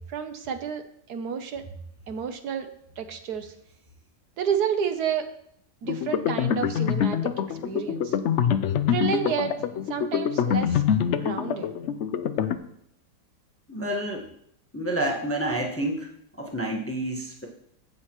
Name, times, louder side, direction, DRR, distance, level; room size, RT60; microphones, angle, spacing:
voice 1, 0.1-1.6 2.1-2.7 3.0-3.5 4.4-5.3 5.8-8.2 8.9-9.5 9.9-10.8 11.2-11.7, right 7 dB, 70° right, 8 dB, 1.2 m, -30 dB
sound 1, 5.8-12.6, left 8 dB, 80° left, 0.6 m, -25 dB
voice 2, 13.7-14.3 14.7-16.1 16.4-17.5, right 1 dB, 10° left, -1 dB, 0.9 m, -29 dB
15.5 x 6.6 x 3.0 m, 0.72 s
omnidirectional pair, 1.8 m